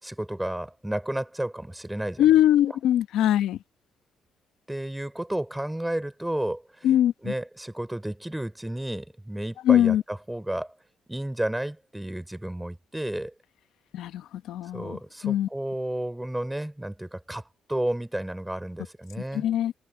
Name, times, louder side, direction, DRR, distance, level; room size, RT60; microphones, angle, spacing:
voice 1, 0.0-2.2 4.7-7.0 7.2-10.7 11.1-13.3 14.7-19.4, right 1 dB, 5° right, 4.7 m, -32 dB
voice 2, 2.2-3.6 6.8-7.3 9.6-10.0 13.9-15.5 19.3-19.7, left 11 dB, 85° left, 1.1 m, -22 dB
cardioid pair, 90°, 0 cm